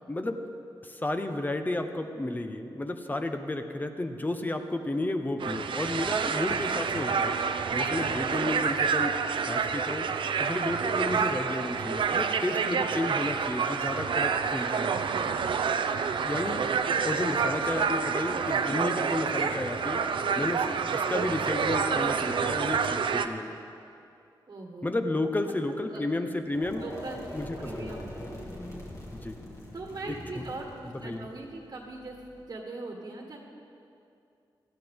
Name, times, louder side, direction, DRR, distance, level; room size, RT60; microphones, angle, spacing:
voice 1, 0.1-0.4 0.8-7.3 7.7-9.2 9.5-10.1 10.4-14.9 16.2-16.7 17.0-20.0 20.3-23.5 24.8-26.8 27.3-27.9 29.1-29.4 30.1-30.4 31.0-31.3, left 2 dB, 20° left, 6 dB, 1.0 m, -32 dB
sound 1, 5.4-23.3, right 6 dB, 75° right, 0.6 m, -28 dB
voice 2, 14.8-15.4 20.8-20.9 24.5-24.9 25.4-25.5 25.9-26.0 26.8-27.3 27.6-28.2 29.7-32.1 32.5-33.4, right 2 dB, 50° right, 0 dB, 1.6 m, -41 dB
sound 2, 26.4-32.4, left 1 dB, 35° left, 2.9 m, -42 dB
18.0 x 13.5 x 3.7 m, 2.6 s
cardioid pair, 80°, 9 cm